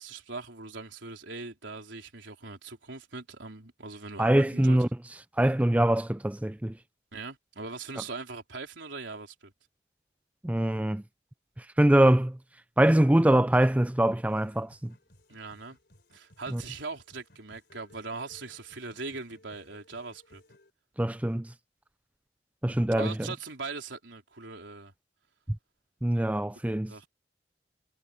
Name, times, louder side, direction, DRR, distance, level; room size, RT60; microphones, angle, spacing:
voice 1, 0.0-4.8 7.1-9.5 15.3-15.8 16.1-20.4 23.0-24.9 26.9-27.1, right 3 dB, 85° right, 4.0 m, -40 dB
voice 2, 4.2-4.9 5.4-6.8 10.4-11.0 11.6-12.4 12.8-14.9 16.5-16.6 21.0-21.5 22.6-23.1 26.0-27.0, right 1 dB, 10° right, 0.3 m, -23 dB
sound 1, 14.3-20.7, left 1 dB, 60° left, 4.7 m, -60 dB
head